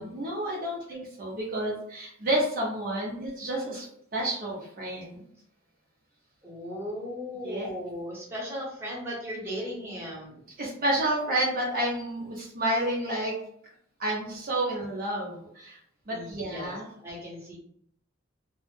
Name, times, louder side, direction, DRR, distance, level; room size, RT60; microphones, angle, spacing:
voice 1, 0.0-5.2 7.4-7.7 10.6-13.4 14.0-15.8 16.1-16.9, right 1 dB, 45° right, -4 dB, 0.6 m, -30 dB
voice 2, 6.4-10.4 16.1-16.7 17.0-17.6, equal, 10° right, -5 dB, 0.9 m, -37 dB
2.1 x 2.0 x 3.1 m, 0.67 s
head